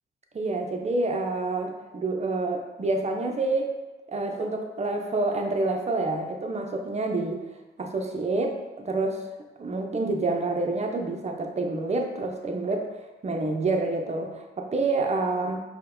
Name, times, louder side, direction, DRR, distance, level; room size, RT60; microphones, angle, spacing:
voice 1, 0.3-3.7 4.1-7.4 7.8-9.2 9.6-12.9 13.2-15.6, right 2 dB, 30° right, 3 dB, 0.5 m, -28 dB
4.4 x 2.1 x 3.7 m, 1.1 s
cardioid pair, 85°, 21 cm